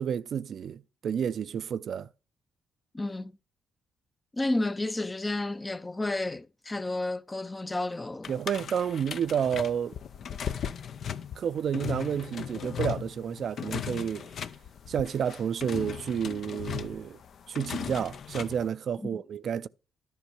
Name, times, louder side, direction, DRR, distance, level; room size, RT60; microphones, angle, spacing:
voice 1, 0.0-2.1 8.3-10.0 11.4-14.3 14.9-17.2 17.5-19.7, right 8 dB, 65° right, 0.4 m, -30 dB
voice 2, 2.9-3.4 4.3-8.3 19.0-19.1, left 2 dB, 20° left, 0.6 m, -31 dB
sound 1, 8.2-18.7, left 8 dB, 65° left, 0.6 m, -37 dB
10.5 x 5.3 x 6.3 m
supercardioid pair, 70°, 0 cm